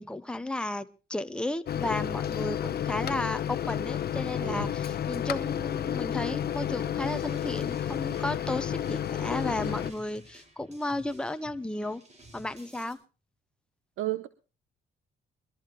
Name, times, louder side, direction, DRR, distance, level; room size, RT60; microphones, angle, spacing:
voice 1, 0.0-12.0 12.3-13.0, left 1 dB, 5° left, 10 dB, 0.8 m, -34 dB
Microwave oven, 1.7-9.9, left 10 dB, 50° left, 0.9 m, -31 dB
sound 1, 7.0-12.9, right 1 dB, 35° right, 5.3 m, -53 dB
voice 2, 14.0-14.3, right 15 dB, 80° right, 13 dB, 0.8 m, -32 dB
22.0 x 14.0 x 3.0 m, 0.33 s
cardioid pair, 90°, 20 cm